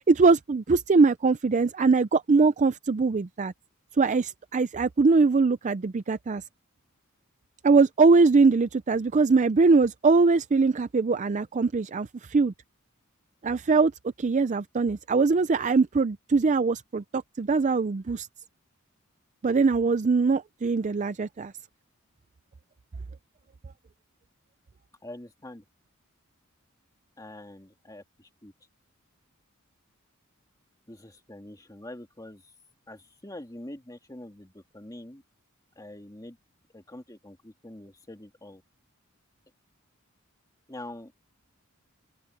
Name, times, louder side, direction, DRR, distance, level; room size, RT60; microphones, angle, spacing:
voice 1, 0.1-3.5 4.0-6.4 7.6-12.5 13.4-13.9 14.2-18.3 19.4-21.5, right 4 dB, 35° right, 0.4 m, -22 dB
voice 2, 25.0-25.6 27.2-28.5 30.9-32.5 32.9-35.2 35.8-36.4 36.7-38.6 40.7-41.1, left 1 dB, 15° left, 2.3 m, -44 dB
open air
head